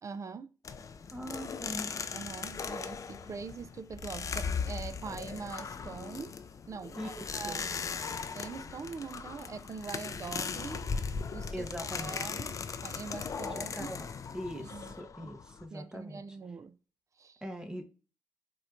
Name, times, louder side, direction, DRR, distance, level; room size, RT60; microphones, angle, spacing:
voice 1, 0.0-0.5 2.1-6.4 6.7-7.7 8.3-10.9 11.3-13.9 14.6-14.9 15.2-15.3 15.7-16.8 17.2-17.4, right 5 dB, 40° right, 0.3 m, -43 dB
sound 1, 0.6-15.7, left 5 dB, 40° left, 0.4 m, -38 dB
voice 2, 1.1-1.9 7.0-7.6 11.5-12.2 13.6-14.1 14.3-16.2 17.4-17.8, equal, 10° right, 0.8 m, -41 dB
4.2 x 2.1 x 2.5 m
supercardioid pair, 55°, 8 cm